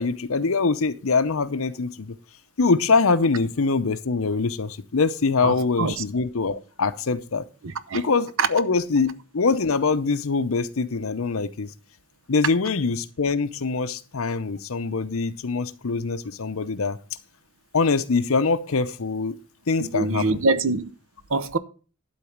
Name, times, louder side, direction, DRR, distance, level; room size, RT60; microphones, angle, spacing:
voice 1, 0.0-2.1 2.6-7.4 7.9-11.7 12.3-17.0 17.7-19.3 19.7-20.2, left 4 dB, 65° left, 0.7 m, -23 dB
voice 2, 5.4-6.0 7.6-8.0 8.4-8.5 19.8-20.9 21.3-21.6, right 3 dB, 65° right, 0.8 m, -24 dB
12.0 x 4.0 x 7.2 m
head